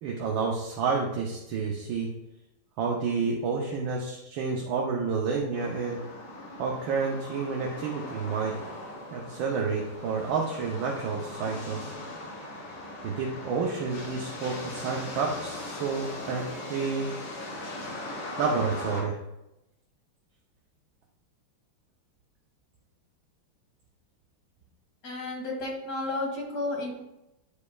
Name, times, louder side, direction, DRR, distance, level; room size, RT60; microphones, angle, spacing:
voice 1, 0.0-2.1 2.8-6.0 6.6-8.5 9.1-11.9 13.0-16.4 16.7-17.1 18.4-19.2, right 5 dB, 70° right, -1 dB, 1.5 m, -29 dB
sound 1, 5.5-19.0, left 1 dB, 60° left, 2.4 m, -39 dB
voice 2, 25.0-26.9, left 2 dB, 40° left, -2 dB, 2.1 m, -32 dB
9.6 x 5.1 x 2.3 m, 0.89 s
omnidirectional pair, 2.4 m